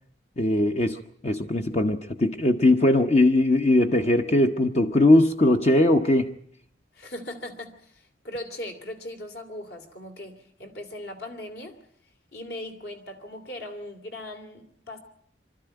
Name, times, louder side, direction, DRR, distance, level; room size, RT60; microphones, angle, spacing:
voice 1, 0.4-6.4, left 1 dB, 35° left, 5 dB, 0.9 m, -20 dB
voice 2, 6.9-11.8 12.3-15.0, left 1 dB, 60° left, 4 dB, 2.8 m, -39 dB
24.5 x 13.0 x 9.1 m, 0.66 s
head